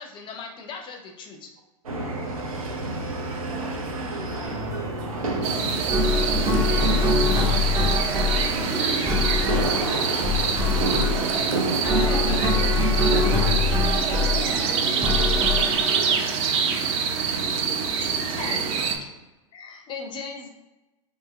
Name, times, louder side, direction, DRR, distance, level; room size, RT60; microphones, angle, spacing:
voice 1, 0.0-1.5 8.5-9.5 11.8-12.5 17.4-17.7 17.9-19.1 19.5-20.5, left 4 dB, 30° left, 0.4 m, -38 dB
sound 1, 1.8-13.8, right 2 dB, 90° right, 0.6 m, -30 dB
voice 2, 3.4-5.9 6.4-7.9 10.3-10.9 11.6-12.6 13.8-16.5 18.4-18.7, right 3 dB, 60° right, 1.0 m, -39 dB
sound 2, 4.4-16.1, left 3 dB, 15° right, 0.8 m, -25 dB
sound 3, 5.4-19.0, right 6 dB, 35° right, 0.4 m, -26 dB
2.7 x 2.1 x 3.5 m
hypercardioid pair, 100°, 18 cm